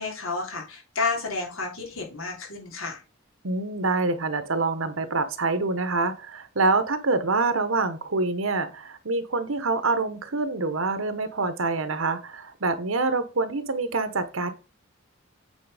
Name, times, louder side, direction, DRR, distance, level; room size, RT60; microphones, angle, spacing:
voice 1, 0.0-3.0, left 4 dB, 85° left, 0 dB, 3.3 m, -31 dB
voice 2, 3.4-14.5, right 3 dB, 85° right, 10 dB, 1.2 m, -26 dB
8.6 x 4.5 x 5.1 m, 0.31 s
head